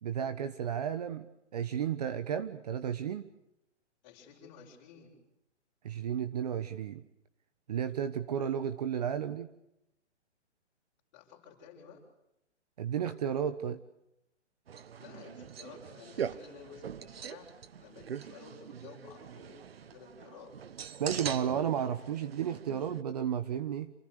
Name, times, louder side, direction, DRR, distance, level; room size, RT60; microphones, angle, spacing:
voice 1, 0.0-3.3 5.8-7.0 7.7-9.5 12.8-13.8 21.0-23.9, right 8 dB, 35° right, 11 dB, 1.3 m, -33 dB
voice 2, 4.0-5.2 11.1-12.0 15.0-20.6, left 6 dB, 20° left, 0 dB, 7.2 m, -53 dB
sound 1, 14.7-23.0, right 8 dB, 55° right, 1.4 m, -42 dB
28.5 x 27.5 x 6.7 m, 0.82 s
hypercardioid pair, 170°, 35 cm